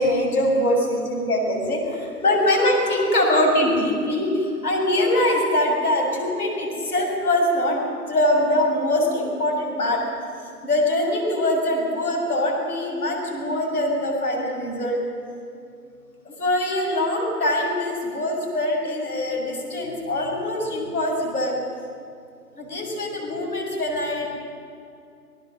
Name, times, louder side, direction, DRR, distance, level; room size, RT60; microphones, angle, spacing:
voice 1, 0.0-10.0 10.6-15.0 16.2-21.6 22.5-24.3, left 1 dB, 65° left, 1 dB, 6.9 m, -23 dB
27.5 x 18.5 x 6.5 m, 2.5 s
figure-of-eight pair, 160°, 48 cm